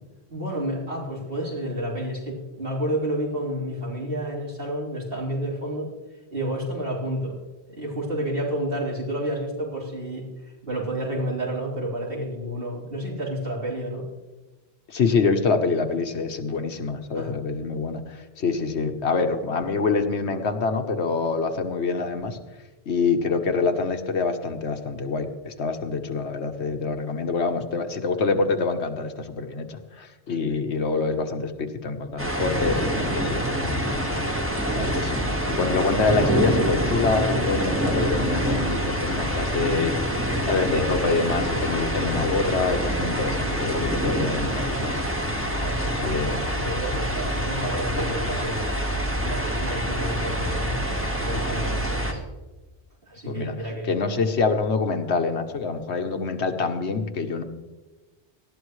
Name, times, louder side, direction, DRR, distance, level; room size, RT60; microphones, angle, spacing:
voice 1, 0.3-5.9 6.3-7.4 7.7-10.3 10.6-14.0 17.1-17.4 45.5-50.8 51.2-52.2 53.1-54.0, right 1 dB, 55° right, -4 dB, 4.1 m, -30 dB
voice 2, 14.9-22.4 22.9-34.2 34.7-40.0 40.4-44.9 45.3-45.4 46.0-46.4 53.3-53.5 53.8-57.4, left 4 dB, 80° left, 6 dB, 1.3 m, -26 dB
sound 1, 32.2-52.1, equal, 10° right, 1.7 m, -26 dB
19.0 x 13.5 x 3.2 m, 1.2 s
omnidirectional pair, 1.1 m